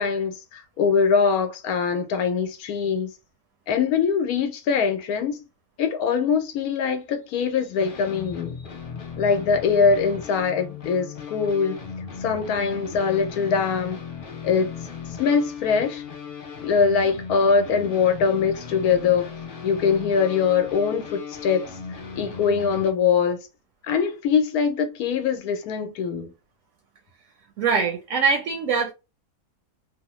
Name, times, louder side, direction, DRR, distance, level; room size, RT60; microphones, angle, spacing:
voice 1, 0.0-3.1 3.7-5.4 5.8-8.6 9.2-11.8 12.2-14.0 14.4-14.7 15.2-16.0 16.6-19.3 19.6-21.6 22.2-23.4 23.8-26.3, left 6 dB, 80° left, 1.1 m, -22 dB
sound 1, 7.8-22.9, left 6 dB, 50° left, 0.7 m, -37 dB
voice 2, 27.6-28.9, right 5 dB, 65° right, 0.9 m, -22 dB
2.9 x 2.1 x 3.0 m
omnidirectional pair, 1.6 m